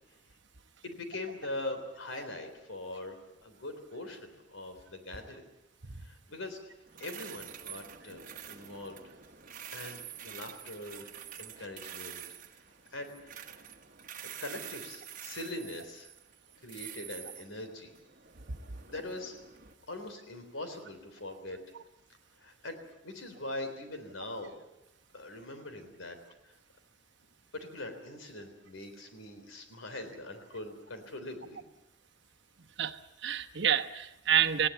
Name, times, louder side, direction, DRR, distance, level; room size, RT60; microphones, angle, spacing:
voice 1, 0.8-5.5 6.0-6.7 7.0-9.0 9.7-11.1 11.4-12.3 12.5-12.6 12.9-13.6 14.2-16.1 16.6-17.9 18.9-19.4 19.9-21.6 22.4-22.8 23.0-24.5 25.1-26.2 26.4-26.5 27.5-31.6, left 2 dB, 85° left, 7 dB, 3.6 m, -42 dB
sound 1, 6.9-19.7, right 10 dB, 45° right, 1.2 m, -47 dB
voice 2, 32.8-34.7, right 9 dB, 65° right, 7 dB, 1.1 m, -29 dB
20.0 x 16.5 x 9.1 m, 0.91 s
head